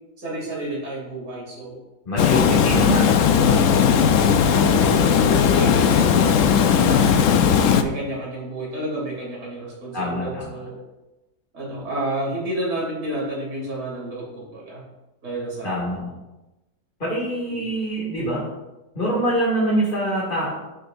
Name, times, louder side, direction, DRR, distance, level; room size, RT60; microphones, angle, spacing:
voice 1, 0.2-1.8 2.4-2.7 3.8-7.4 7.8-10.8 11.5-14.8 15.2-15.9 17.5-17.7, right 1 dB, 65° right, -5 dB, 3.7 m, -30 dB
voice 2, 2.1-3.0 3.4-4.0 9.9-10.5 15.6-16.1 17.0-18.4 18.9-20.5, right 1 dB, 30° left, -7 dB, 2.4 m, -25 dB
Water, 2.2-7.8, left 7 dB, 70° left, 0.7 m, -17 dB
13.5 x 6.6 x 2.6 m, 1.0 s
omnidirectional pair, 1.9 m